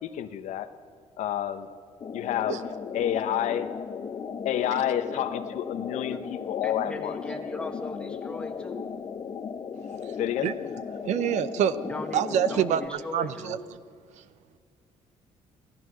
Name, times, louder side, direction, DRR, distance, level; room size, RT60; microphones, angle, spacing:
voice 1, 0.0-0.7 1.2-1.7 2.1-2.7 2.9-3.7 4.4-7.2 10.2-10.5, left 11 dB, 75° left, 10 dB, 0.9 m, -29 dB
sound 1, 2.0-12.9, left 6 dB, 35° left, 0.8 m, -36 dB
voice 2, 6.6-8.8 11.8-13.6, left 2 dB, 10° left, 4 dB, 1.4 m, -38 dB
voice 3, 11.0-11.8 12.1-13.6, right 9 dB, 70° right, 15 dB, 0.6 m, -26 dB
16.0 x 13.5 x 6.3 m, 2.2 s
cardioid pair, 150°, 12 cm